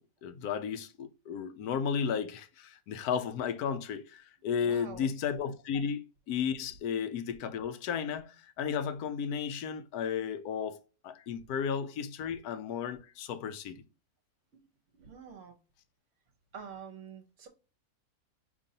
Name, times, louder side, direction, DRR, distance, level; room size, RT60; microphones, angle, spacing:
voice 1, 0.0-13.8, left 7 dB, 80° left, 1.1 m, -34 dB
voice 2, 4.6-5.1 14.9-15.6 16.5-17.5, right 6 dB, 60° right, 1.0 m, -46 dB
5.1 x 3.0 x 2.7 m
omnidirectional pair, 1.6 m